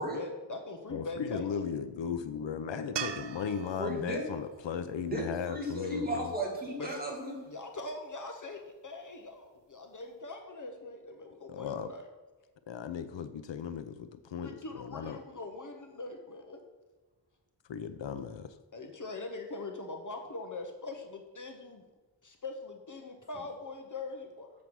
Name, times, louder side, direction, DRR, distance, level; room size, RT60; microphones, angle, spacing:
voice 1, 0.1-1.8 6.8-6.9 7.5-12.1 14.4-16.6 18.7-21.8 22.2-24.5, left 2 dB, 40° left, 4 dB, 0.9 m, -42 dB
voice 2, 0.9-6.3 11.5-11.9 12.7-15.2 17.7-18.5, left 7 dB, 75° left, 11 dB, 0.6 m, -37 dB
sound 1, 3.0-6.2 9.5-9.6, right 9 dB, 65° right, 0.6 m, -42 dB
voice 3, 3.8-4.3 5.1-7.5, equal, 20° right, -2 dB, 2.2 m, -35 dB
7.4 x 6.8 x 6.1 m, 1.2 s
wide cardioid pair, 145°, 45 cm